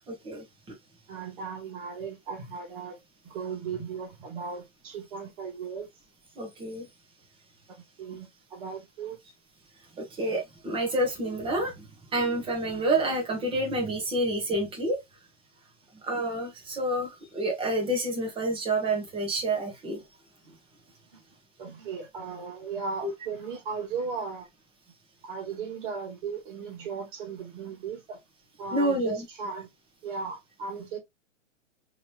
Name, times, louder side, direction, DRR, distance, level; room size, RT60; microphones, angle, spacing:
voice 1, 0.1-0.4 6.4-6.9 10.0-11.8 12.1-15.0 16.0-20.0 28.7-29.2, right 1 dB, 15° right, 1.5 m, -28 dB
voice 2, 1.1-3.0 3.2-5.9 8.0-9.2 20.5-20.6 21.6-24.5 25.2-28.2 28.6-29.7 30.0-31.0, right 5 dB, 40° right, 2.4 m, -36 dB
3.8 x 3.4 x 2.9 m
hypercardioid pair, 150°, 38 cm